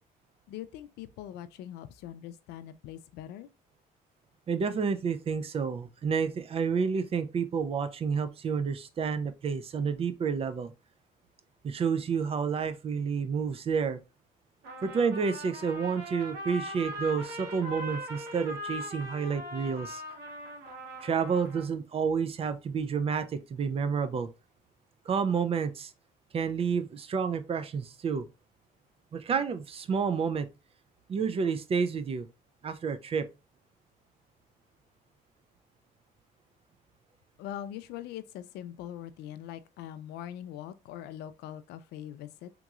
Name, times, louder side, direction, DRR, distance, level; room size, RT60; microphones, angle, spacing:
voice 1, 0.5-3.5 37.4-42.5, left 11 dB, 80° left, 0.4 m, -42 dB
voice 2, 4.5-10.7 11.6-14.0 14.8-20.0 21.0-24.3 25.1-25.9 26.3-28.3 29.1-30.5 31.1-32.3 32.6-33.3, right 6 dB, 35° right, 0.4 m, -30 dB
Trumpet, 14.6-21.8, equal, 85° right, 1.1 m, -40 dB
3.6 x 3.0 x 2.4 m
cardioid pair, 110°, 17 cm